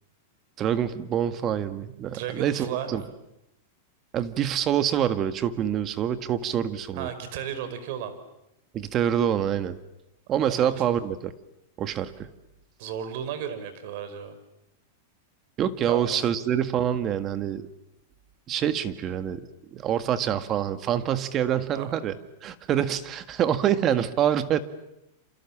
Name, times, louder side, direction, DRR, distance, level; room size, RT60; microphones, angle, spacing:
voice 1, 0.6-3.0 4.1-7.1 8.7-9.8 10.3-11.3 11.8-12.3 15.6-17.6 18.5-22.2 22.4-24.6, right 10 dB, 30° right, 11 dB, 1.7 m, -26 dB
voice 2, 2.1-3.1 6.9-8.1 10.4-10.8 12.8-14.4 15.9-16.3 21.7-21.9, right 9 dB, 60° right, 11 dB, 4.9 m, -34 dB
28.5 x 27.5 x 7.4 m, 0.85 s
supercardioid pair, 135°, 0 cm